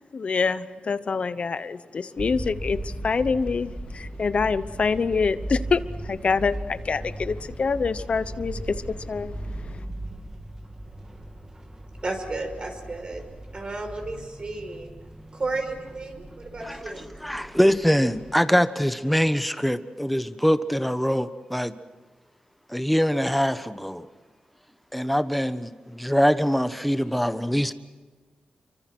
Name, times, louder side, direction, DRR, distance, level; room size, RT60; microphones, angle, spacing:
voice 1, 0.1-8.6 8.9-9.3, left 5 dB, 50° left, 13 dB, 0.9 m, -26 dB
sound 1, 2.2-18.4, right 1 dB, 25° right, 2.7 m, -38 dB
voice 2, 12.0-13.2 13.5-14.9 15.3-17.1, right 2 dB, 40° right, 5 dB, 5.5 m, -33 dB
voice 3, 17.2-21.7 22.7-24.1 24.9-27.7, equal, ahead, 11 dB, 1.1 m, -23 dB
29.0 x 24.5 x 6.2 m, 1.4 s
wide cardioid pair, 110°, 3 cm